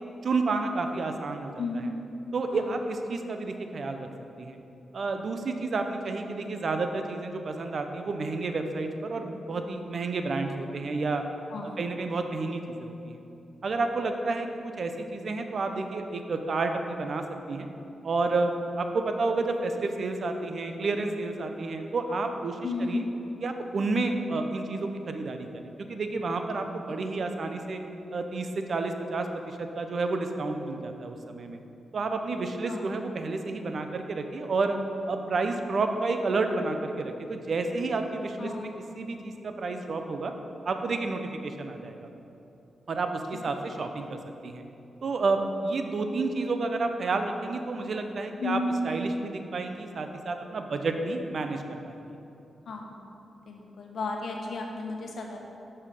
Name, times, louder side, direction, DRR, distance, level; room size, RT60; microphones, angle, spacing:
voice 1, 0.2-1.5 2.3-4.1 4.4-4.6 4.9-11.2 11.6-13.2 13.6-17.7 18.0-22.6 22.9-23.0 23.4-27.8 28.1-31.6 31.9-34.8 35.1-38.5 38.9-40.3 40.7-42.1 42.9-44.6 45.0-48.6 48.8-52.0, right 3 dB, 65° right, 6 dB, 0.6 m, -30 dB
voice 2, 1.6-1.9 2.5-2.6 6.3-6.5 11.5-11.9 22.6-23.1 27.1-27.3 32.7-32.8 38.4-38.7 43.5-43.7 48.4-48.7 52.7-53.2 53.5-55.4, left 3 dB, 70° left, 1 dB, 1.0 m, -34 dB
6.4 x 5.5 x 5.3 m, 2.8 s
cardioid pair, 55°, 0 cm